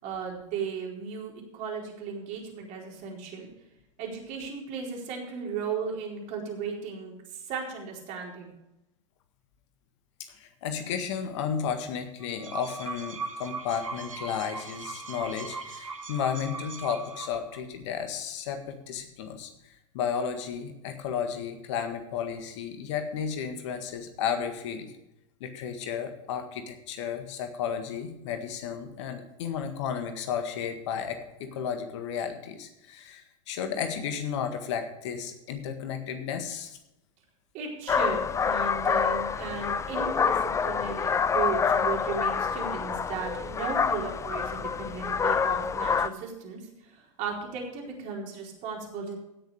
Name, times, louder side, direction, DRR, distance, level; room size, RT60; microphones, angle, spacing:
voice 1, 0.0-3.5 4.0-8.5 37.5-49.2, right 5 dB, 50° right, 0 dB, 4.3 m, -36 dB
voice 2, 10.3-25.0 25.4-36.8, left 7 dB, 60° left, 7 dB, 1.7 m, -33 dB
sound 1, 12.2-17.6, right 4 dB, 90° right, 1.6 m, -39 dB
sound 2, 37.9-46.1, left 6 dB, 20° left, 0.6 m, -27 dB
16.5 x 6.8 x 5.0 m, 0.89 s
hypercardioid pair, 95°, 17 cm